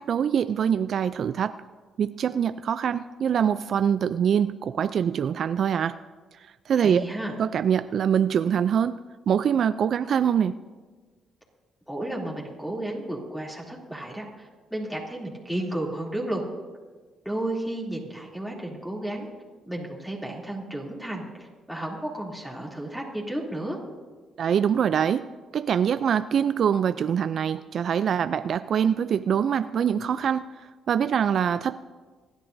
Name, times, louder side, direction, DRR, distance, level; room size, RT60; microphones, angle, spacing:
voice 1, 0.0-1.5 2.0-6.0 6.4-7.0 7.4-9.0 9.3-10.6 24.4-25.3 25.5-30.4 30.9-31.8, right 8 dB, 60° right, 13 dB, 0.3 m, -24 dB
voice 2, 6.8-7.3 11.9-16.4 17.2-19.3 19.7-23.8, right 1 dB, 5° left, -3 dB, 2.8 m, -33 dB
27.0 x 11.0 x 2.6 m, 1.4 s
cardioid pair, 90°, 0 cm